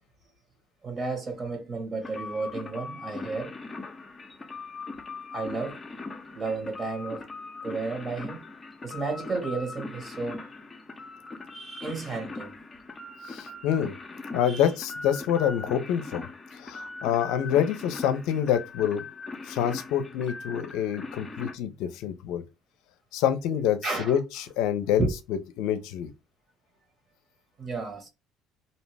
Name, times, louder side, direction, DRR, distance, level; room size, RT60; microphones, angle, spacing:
voice 1, 0.8-3.5 5.3-7.3 7.6-8.4 8.8-10.4 11.5-12.5 14.5-14.7 23.8-24.2 25.0-25.1 27.6-28.1, right 3 dB, 35° right, 1.3 m, -32 dB
sound 1, 2.0-21.5, left 3 dB, 25° left, 0.6 m, -40 dB
voice 2, 13.3-13.9 14.3-16.3 16.6-19.0 19.5-22.4 23.1-26.1, left 9 dB, 75° left, 0.5 m, -27 dB
2.6 x 2.0 x 3.3 m
supercardioid pair, 75°, 0 cm